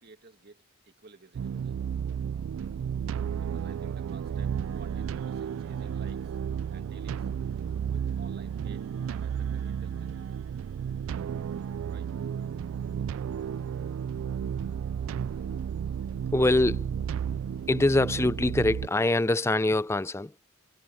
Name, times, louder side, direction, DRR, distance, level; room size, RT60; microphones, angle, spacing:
voice 1, 0.0-1.8 3.3-6.4 6.7-7.3 7.9-10.4 11.9-12.1, right 4 dB, 50° right, 2.2 m, -53 dB
sound 1, 1.3-18.9, right 8 dB, 80° right, 0.3 m, -33 dB
voice 2, 16.3-16.9 17.7-20.5, left 2 dB, 15° left, 0.4 m, -24 dB
head